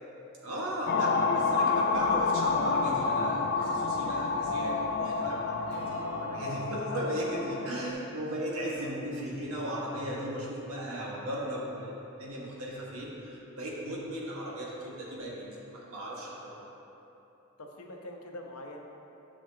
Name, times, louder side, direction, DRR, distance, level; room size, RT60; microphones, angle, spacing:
voice 1, 0.4-11.9 12.2-16.6, equal, 75° right, -4 dB, 1.5 m, -36 dB
sound 1, 0.9-7.9, left 4 dB, 45° left, 0.3 m, -29 dB
Acoustic guitar / Strum, 5.7-9.3, left 2 dB, 50° right, 1.2 m, -53 dB
voice 2, 6.0-6.3 8.8-9.0 17.6-18.8, left 1 dB, 80° left, 1 dB, 0.8 m, -45 dB
10.0 x 6.0 x 2.8 m, 3.0 s
head